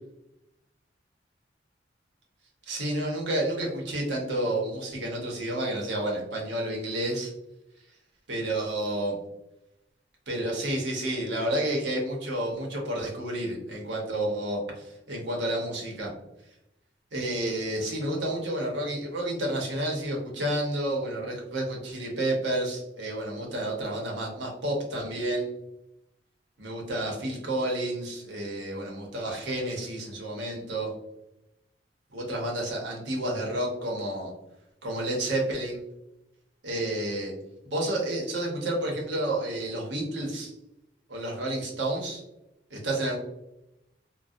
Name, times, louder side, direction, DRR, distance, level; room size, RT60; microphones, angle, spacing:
voice 1, 2.7-7.3 8.3-9.2 10.3-16.1 17.1-25.5 26.6-30.9 32.1-34.3 34.8-35.8 36.6-37.3 37.6-40.5 41.1-42.2 42.7-43.2, right 1 dB, 70° right, -1 dB, 0.7 m, -30 dB
2.6 x 2.0 x 2.3 m, 0.87 s
head